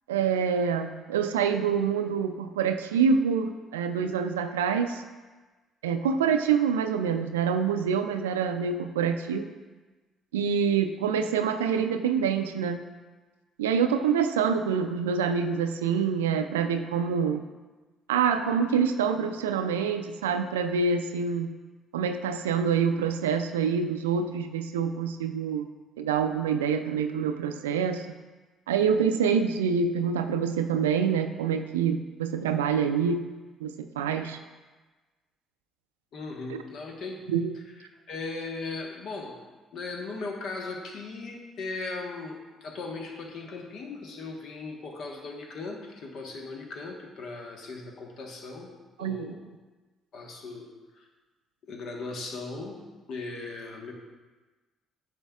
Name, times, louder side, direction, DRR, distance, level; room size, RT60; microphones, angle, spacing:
voice 1, 0.1-5.0 5.8-9.5 10.3-12.8 13.6-17.4 18.1-21.5 21.9-25.7 26.0-28.1 28.7-33.2 33.6-34.4 36.5-36.6 37.3-37.5 49.0-49.3, right 6 dB, 80° right, 8 dB, 0.3 m, -26 dB
voice 2, 36.1-37.3 37.8-39.4 39.7-49.4 50.1-50.7 51.0-51.1 51.7-53.9, left 3 dB, 60° left, 1 dB, 1.2 m, -38 dB
10.0 x 6.8 x 2.3 m, 1.3 s
hypercardioid pair, 50°, 0 cm